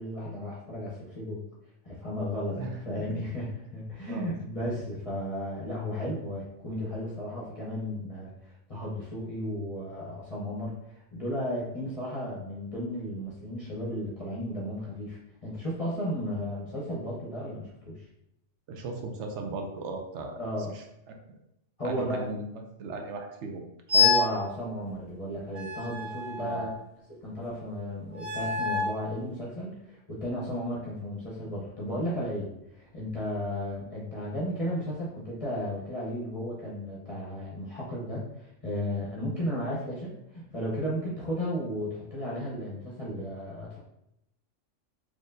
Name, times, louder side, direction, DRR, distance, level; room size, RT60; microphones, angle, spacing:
voice 1, 0.0-1.4 1.8-10.8 11.1-18.0 20.4-20.7 21.8-22.3 23.9-26.7 27.1-43.8, equal, 35° left, -7 dB, 0.7 m, -34 dB
voice 2, 2.6-3.2 4.1-4.3 18.7-20.4 20.7-21.2 21.8-22.5 22.8-23.6 24.0-24.1 26.4-26.7, right 3 dB, 70° right, 3 dB, 0.9 m, -37 dB
sound 1, 23.9-24.4 25.5-26.8 28.1-29.0, left 5 dB, 40° right, 0.4 m, -26 dB
4.2 x 3.0 x 2.6 m, 0.83 s
omnidirectional pair, 1.3 m